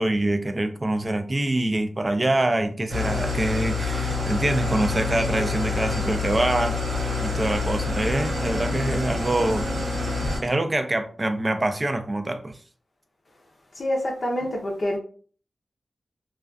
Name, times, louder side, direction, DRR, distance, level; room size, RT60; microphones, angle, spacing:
voice 1, 0.0-6.8 7.2-9.7 10.4-12.5, right 1 dB, 30° right, 0.4 m, -25 dB
Engine starting / Idling, 2.9-10.4, left 3 dB, 85° right, 0.7 m, -27 dB
voice 2, 13.8-15.0, left 1 dB, 55° left, 0.5 m, -26 dB
2.4 x 2.2 x 2.3 m
wide cardioid pair, 70°, 0 cm